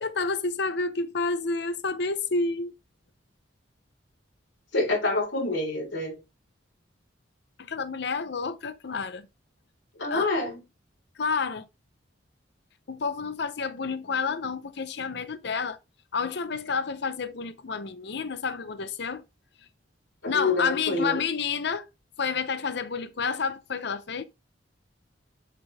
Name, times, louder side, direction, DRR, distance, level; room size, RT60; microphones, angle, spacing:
voice 1, 0.0-2.7 7.6-9.3 10.1-10.3 11.2-11.7 12.9-15.8 16.1-19.2 20.3-21.8 22.2-24.2, left 4 dB, 60° left, 0.6 m, -29 dB
voice 2, 4.7-6.2 10.0-10.6 20.2-21.2, left 2 dB, 80° left, 4.0 m, -27 dB
7.5 x 5.4 x 3.4 m
head